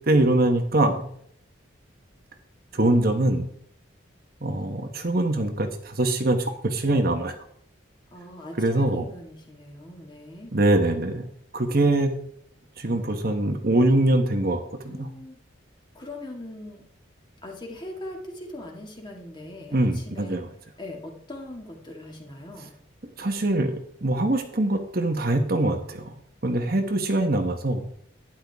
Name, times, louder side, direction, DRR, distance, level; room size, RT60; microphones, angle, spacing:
voice 1, 0.1-1.1 2.7-3.5 4.4-7.4 8.6-9.0 10.5-11.3 11.5-12.3 12.8-15.1 19.7-20.5 23.2-26.1 26.4-27.8, right 1 dB, 50° right, 5 dB, 1.2 m, -23 dB
voice 2, 8.1-10.5 14.8-15.4 15.9-16.8 17.4-20.4 20.8-22.7, left 1 dB, 25° left, 1 dB, 2.1 m, -40 dB
12.0 x 10.5 x 3.6 m, 0.64 s
head